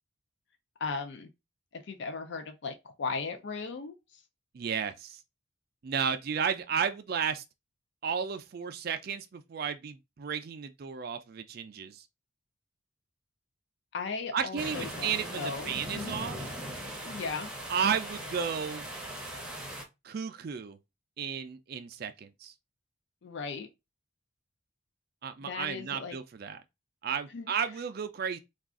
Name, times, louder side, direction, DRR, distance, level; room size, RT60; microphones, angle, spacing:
voice 1, 0.8-1.3 1.7-4.2 13.9-16.2 17.0-17.5 23.2-23.7 25.4-26.2 27.3-27.5, left 4 dB, 60° left, 0.4 m, -37 dB
voice 2, 4.5-5.2 5.8-7.4 8.0-12.1 14.3-16.4 17.7-18.9 20.0-20.8 21.2-22.5 25.2-26.6 27.0-28.4, right 7 dB, 45° right, 0.3 m, -33 dB
sound 1, 14.6-19.8, right 1 dB, 5° right, 0.6 m, -39 dB
2.4 x 2.3 x 3.6 m
head